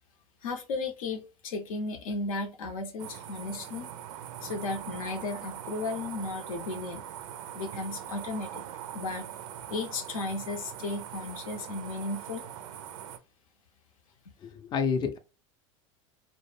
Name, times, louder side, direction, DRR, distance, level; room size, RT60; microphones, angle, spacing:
voice 1, 0.4-3.9 4.4-7.0 7.5-8.6 8.9-9.3 9.7-12.4, left 3 dB, 85° left, 0.6 m, -35 dB
sound 1, 3.0-13.2, right 10 dB, 75° right, 0.4 m, -42 dB
voice 2, 14.4-15.2, left 6 dB, 25° left, 0.4 m, -29 dB
2.1 x 2.1 x 3.1 m
hypercardioid pair, 105°, 17 cm